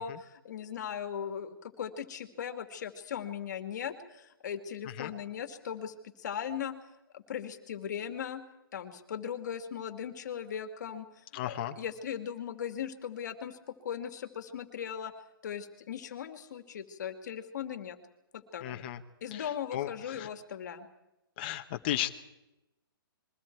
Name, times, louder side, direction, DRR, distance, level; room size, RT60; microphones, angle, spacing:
voice 1, 0.0-6.7 7.1-8.4 8.7-11.1 11.4-13.6 13.8-15.1 15.4-18.0 18.3-18.8 19.2-20.9, left 8 dB, 50° left, 8 dB, 2.1 m, -38 dB
voice 2, 11.3-11.7 18.6-19.0 19.3-19.4 19.7-20.3 21.4-22.1, left 12 dB, 25° left, 6 dB, 1.2 m, -35 dB
29.0 x 22.5 x 4.6 m, 0.93 s
hypercardioid pair, 170°, 12 cm